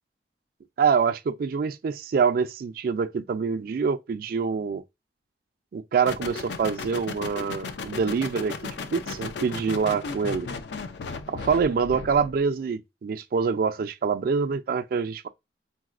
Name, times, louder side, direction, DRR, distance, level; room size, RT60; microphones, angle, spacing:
voice 1, 0.8-4.8 5.7-10.5 11.3-15.3, right 5 dB, 55° right, 0.3 m, -25 dB
sound 1, 6.1-12.4, left 4 dB, 80° left, 0.4 m, -35 dB
4.0 x 2.1 x 2.3 m
head